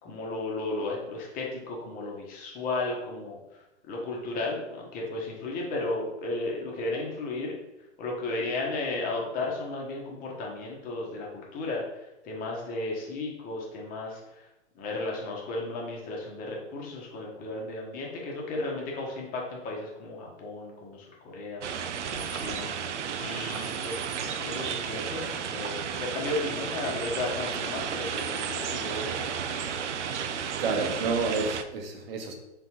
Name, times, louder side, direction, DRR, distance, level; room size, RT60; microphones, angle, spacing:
voice 1, 0.0-3.4 3.9-7.5 8.0-11.8 12.2-14.2 14.8-21.6 22.1-22.7 23.1-29.8, left 2 dB, 25° left, -1 dB, 1.0 m, -34 dB
sound 1, 21.6-31.6, right 7 dB, 90° right, 0.5 m, -33 dB
voice 2, 30.6-32.3, right 4 dB, 55° right, 4 dB, 0.9 m, -29 dB
3.8 x 3.7 x 3.0 m, 0.93 s
hypercardioid pair, 125°, 35 cm